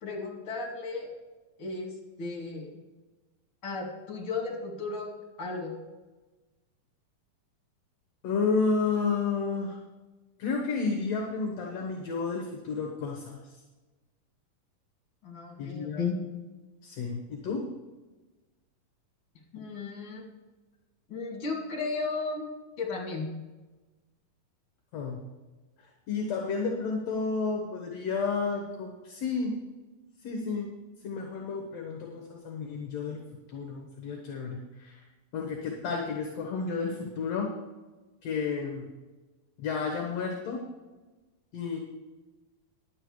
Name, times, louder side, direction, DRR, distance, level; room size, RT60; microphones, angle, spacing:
voice 1, 0.0-1.1 1.6-2.7 3.6-5.1 5.4-5.7 15.2-16.2 19.5-20.2 21.1-22.4 22.8-23.3, left 4 dB, 40° left, -1 dB, 3.1 m, -34 dB
voice 2, 8.2-9.8 10.4-13.5 15.6-16.0 16.8-17.6 24.9-25.2 26.1-29.5 30.2-30.7 31.0-33.2 33.5-35.0 35.3-37.5 38.2-38.9 39.6-40.6 41.5-41.8, left 4 dB, 60° left, 1 dB, 2.1 m, -31 dB
11.0 x 9.2 x 4.8 m, 1.2 s
omnidirectional pair, 4.1 m